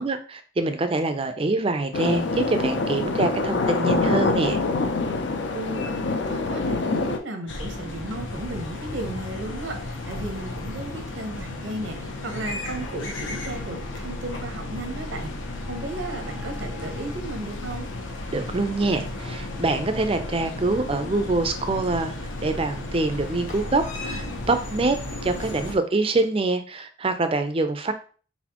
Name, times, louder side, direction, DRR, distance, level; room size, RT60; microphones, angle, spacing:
voice 1, 0.0-4.6 18.3-22.1 22.4-25.0 25.2-27.9, right 3 dB, 30° right, 9 dB, 0.5 m, -25 dB
sound 1, 1.9-7.2, left 3 dB, 70° left, 0.6 m, -25 dB
voice 2, 5.5-17.9, right 1 dB, 80° right, 5 dB, 0.9 m, -35 dB
sound 2, 7.5-25.7, left 2 dB, 90° left, 1.0 m, -34 dB
4.1 x 4.0 x 2.9 m, 0.40 s
head